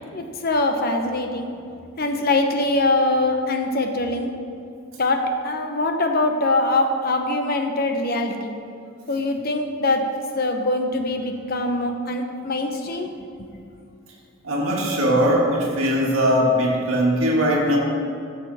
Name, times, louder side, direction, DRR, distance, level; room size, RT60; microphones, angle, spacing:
voice 1, 0.1-1.5 2.0-4.3 5.0-8.6 9.1-10.0 10.4-13.1, left 2 dB, 45° left, 4 dB, 0.9 m, -23 dB
voice 2, 14.4-17.8, equal, 70° right, -3 dB, 2.2 m, -20 dB
14.5 x 7.0 x 4.2 m, 2.5 s
head